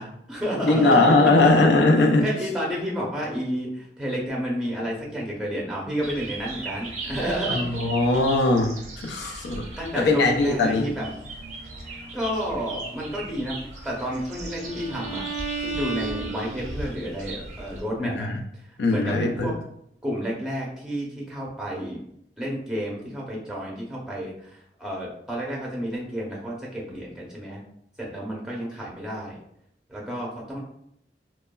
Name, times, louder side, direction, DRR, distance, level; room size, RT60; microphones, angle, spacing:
voice 1, 0.0-1.5 2.2-7.6 9.8-11.1 12.1-15.3 15.6-19.5 20.0-22.0 22.4-27.6 28.0-29.4 29.9-30.6, equal, 5° right, -3 dB, 0.7 m, -31 dB
voice 2, 0.6-2.2 7.5-8.8 9.0-9.7 9.9-10.9 18.0-18.4 18.8-19.5, left 2 dB, 75° left, 3 dB, 0.4 m, -20 dB
sound 1, 6.0-17.8, right 2 dB, 40° right, 0.5 m, -38 dB
Bowed string instrument, 13.9-17.0, right 4 dB, 45° left, 0.7 m, -34 dB
2.9 x 2.2 x 2.2 m, 0.72 s
head